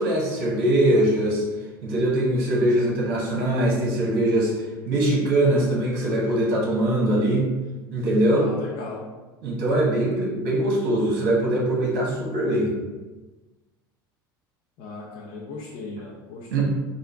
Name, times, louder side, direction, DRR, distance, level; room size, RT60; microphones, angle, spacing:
voice 1, 0.0-1.4 1.8-7.5 7.9-8.5 9.4-12.7 16.5-16.8, right 1 dB, 60° right, -3 dB, 1.2 m, -22 dB
voice 2, 8.3-9.1 14.8-16.8, left 3 dB, 55° left, -4 dB, 0.6 m, -37 dB
3.7 x 2.1 x 3.4 m, 1.2 s
hypercardioid pair, 80°, 12 cm